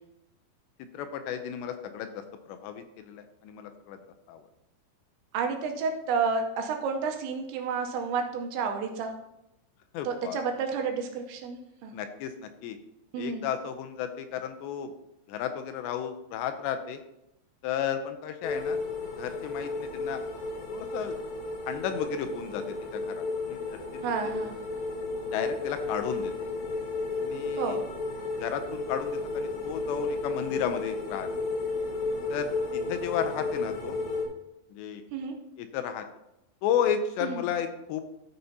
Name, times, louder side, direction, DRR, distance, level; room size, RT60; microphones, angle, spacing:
voice 1, 0.9-4.0 4.3-4.4 9.9-10.4 11.9-12.8 13.2-14.9 15.3-17.0 17.6-18.8 19.2-20.2 20.7-21.2 21.7-22.6 22.9-23.8 24.2-24.3 25.3-26.3 27.2-27.8 28.4-31.3 32.3-34.0 34.7-35.0 35.6-36.1 36.6-38.0, left 8 dB, 85° left, 8 dB, 2.5 m, -33 dB
voice 2, 5.3-9.1 10.0-11.9 13.1-13.4 24.0-24.5 27.6-27.8 35.1-35.3 37.2-37.4, right 5 dB, 80° right, 4 dB, 2.9 m, -30 dB
sound 1, 18.4-34.2, left 3 dB, 65° left, 2.7 m, -33 dB
14.5 x 5.6 x 2.7 m, 0.86 s
omnidirectional pair, 5.5 m